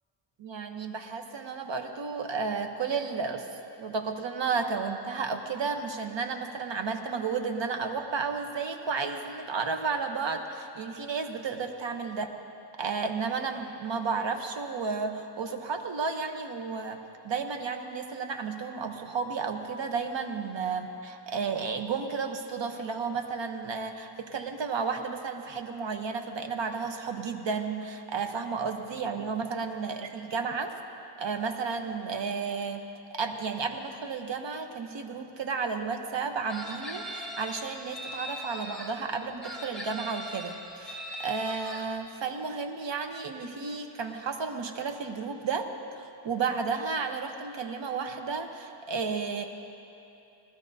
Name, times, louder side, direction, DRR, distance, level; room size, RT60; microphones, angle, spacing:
voice 1, 0.4-3.5 3.8-12.3 12.8-30.8 31.2-32.8 33.1-49.4, right 5 dB, 65° right, 5 dB, 1.0 m, -32 dB
Chicken rooster, 36.5-38.9 39.4-41.8, equal, ahead, 2.0 m, -40 dB
21.5 x 13.0 x 2.7 m, 2.8 s
cardioid pair, 75°, 47 cm